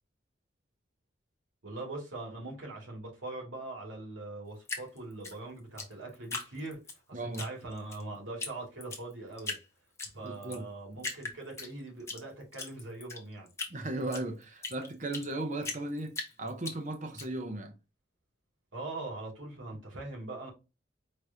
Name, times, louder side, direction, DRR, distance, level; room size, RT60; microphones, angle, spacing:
voice 1, 1.6-9.6 10.1-13.5 18.7-20.5, right 2 dB, 90° right, 2.3 m, -42 dB
Drip, 4.6-7.0 7.3-8.0 8.4-8.5 8.8-9.6 10.0-10.6 11.0-12.2 12.5-15.3 15.6-17.2, left 3 dB, 15° left, 0.8 m, -39 dB
voice 2, 7.1-7.5 10.2-10.7 13.7-17.7, right 2 dB, 40° right, 0.8 m, -36 dB
4.8 x 3.1 x 2.7 m
head